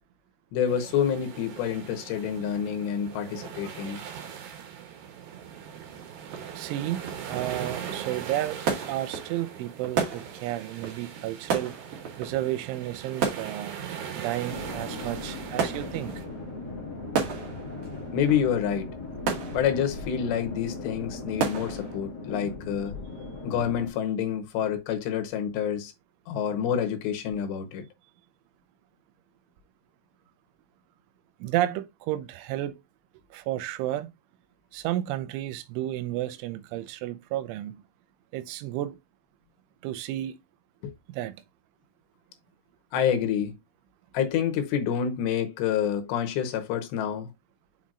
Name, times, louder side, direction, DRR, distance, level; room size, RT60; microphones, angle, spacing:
voice 1, 0.5-4.0 18.1-19.0 19.5-22.9 23.4-25.9 26.3-27.8 40.8-40.9 42.9-43.5 44.1-47.3, left 8 dB, 75° left, 3.0 m, -28 dB
sound 1, 0.7-16.3, right 8 dB, 70° right, 3.3 m, -40 dB
sound 2, 5.3-22.0, right 6 dB, 50° right, 2.5 m, -35 dB
voice 2, 6.5-8.6 8.9-13.8 14.1-16.2 31.4-32.8 33.3-34.1 34.7-37.8 38.3-39.0 39.8-40.4 41.1-41.4, right 14 dB, 90° right, 3.1 m, -32 dB
sound 3, 14.5-23.9, left 3 dB, 50° left, 1.2 m, -38 dB
7.4 x 5.5 x 2.4 m
omnidirectional pair, 5.4 m